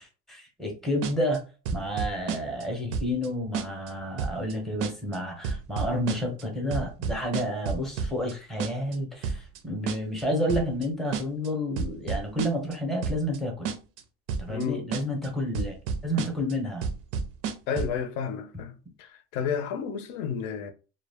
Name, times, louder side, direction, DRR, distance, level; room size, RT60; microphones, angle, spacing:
voice 1, 0.0-1.4 1.7-13.7 14.4-15.7 16.0-16.9, equal, ahead, 0.7 m, -30 dB
sound 1, 1.0-1.4 1.7-2.6 2.9-3.3 3.5-3.9 4.2-4.5 4.8-5.2 5.4-6.4 6.7-8.3 8.6-9.0 9.2-9.6 9.9-10.2 10.5-10.9 11.1-11.5 11.8-12.7 13.0-13.4 13.7-14.0 14.3-14.6 14.9-15.3 15.5-16.5 16.8-18.0, right 6 dB, 50° right, 0.5 m, -30 dB
voice 2, 14.5-14.9 17.7-20.7, left 7 dB, 60° left, 0.6 m, -32 dB
2.2 x 2.0 x 3.3 m
cardioid pair, 145°, 32 cm